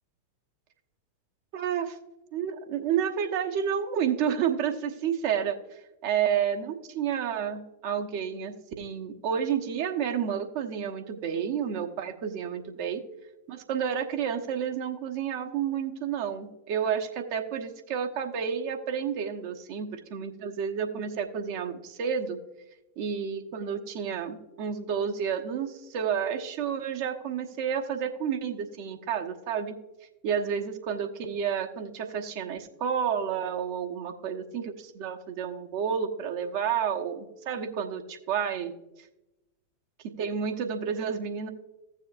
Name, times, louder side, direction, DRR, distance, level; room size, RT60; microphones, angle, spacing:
voice 1, 1.5-2.0 2.3-13.0 13.5-22.4 23.0-29.7 30.2-38.7 40.2-41.5, right 8 dB, 45° right, 4 dB, 1.0 m, -30 dB
15.5 x 7.3 x 2.5 m, 0.98 s
figure-of-eight pair, 90°, 0 cm